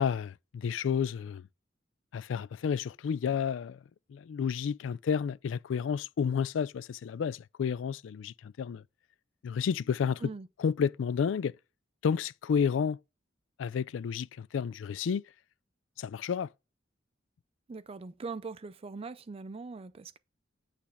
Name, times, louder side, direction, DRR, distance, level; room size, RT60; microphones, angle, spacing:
voice 1, 0.0-1.4 2.1-3.8 4.1-8.8 9.4-10.2 10.6-11.6 12.0-13.0 13.6-15.2 16.0-16.5, left 7 dB, 85° left, 0.3 m, -31 dB
voice 2, 17.7-20.2, right 4 dB, 30° right, 0.4 m, -41 dB
8.5 x 3.4 x 5.6 m
head